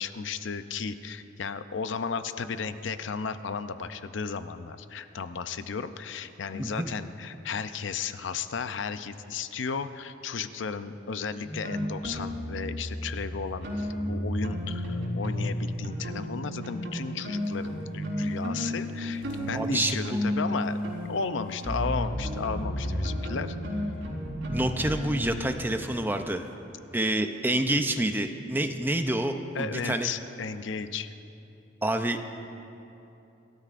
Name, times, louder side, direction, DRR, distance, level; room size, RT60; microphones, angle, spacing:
voice 1, 0.0-20.8 21.0-23.6 29.5-31.1, left 5 dB, 70° left, 11 dB, 0.5 m, -34 dB
voice 2, 6.6-6.9 19.5-20.2 24.5-26.5 26.9-30.1 31.8-32.2, right 1 dB, 10° right, 7 dB, 0.5 m, -28 dB
sound 1, 11.4-15.5 15.8-25.3, equal, 85° right, 3.8 m, -32 dB
sound 2, 13.8-14.1 14.8-14.9 15.2-15.3 16.6-16.7 17.4-19.7 20.1-20.2 21.0-21.1 21.5-21.9 22.5-22.7 23.9-24.8 25.7-26.0, right 3 dB, 70° right, 0.7 m, -47 dB
27.0 x 13.0 x 2.5 m, 2.9 s
head